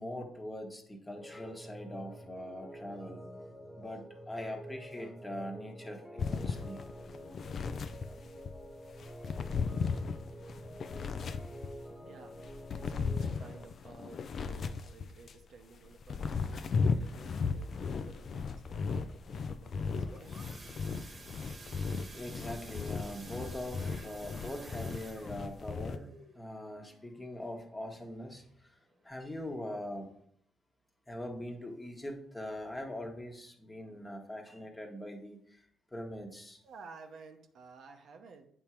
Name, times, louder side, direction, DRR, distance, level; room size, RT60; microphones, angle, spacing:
voice 1, 0.0-3.2 3.8-6.8 21.1-21.4 22.1-28.8 29.0-30.1 31.1-36.6, left 1 dB, 15° left, 2 dB, 1.2 m, -42 dB
sound 1, 1.1-13.7, equal, 10° right, 1.3 m, -48 dB
sound 2, 6.2-8.6 9.0-11.9 12.4-15.4 15.9-26.0, left 5 dB, 50° left, 0.4 m, -36 dB
voice 2, 12.0-20.6 36.6-38.5, right 4 dB, 65° right, 4 dB, 0.8 m, -54 dB
sound 3, 19.7-28.4 28.8-29.1 29.4-29.5 29.9-30.0, right 2 dB, 35° right, 1.2 m, -52 dB
8.7 x 3.6 x 4.4 m, 0.67 s
cardioid pair, 90°, 0 cm